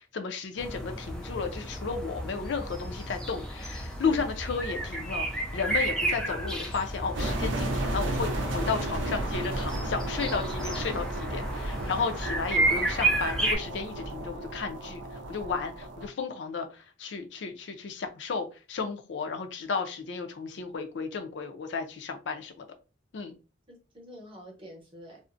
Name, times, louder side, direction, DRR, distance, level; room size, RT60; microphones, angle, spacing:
voice 1, 0.0-22.7 23.1-23.3, left 5 dB, 65° left, 6 dB, 0.4 m, -33 dB
sound 1, 0.6-13.6, right 1 dB, 5° left, 0.4 m, -32 dB
sound 2, 7.1-16.1, right 1 dB, 85° right, 0.5 m, -33 dB
voice 2, 11.7-12.2 23.7-25.2, equal, 30° right, -1 dB, 0.8 m, -48 dB
2.5 x 2.0 x 2.4 m, 0.32 s
head